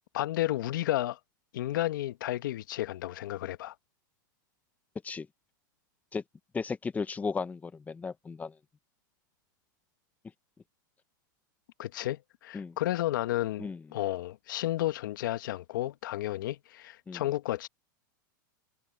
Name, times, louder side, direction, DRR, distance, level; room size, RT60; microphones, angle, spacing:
voice 1, 0.1-1.2 1.5-3.7 11.8-17.7, left 15 dB, 75° left, 1.2 m, -32 dB
voice 2, 6.5-8.5 12.5-12.8 13.6-13.8 17.1-17.2, left 5 dB, 15° left, 1.1 m, -35 dB
hypercardioid pair, 125°, 11 cm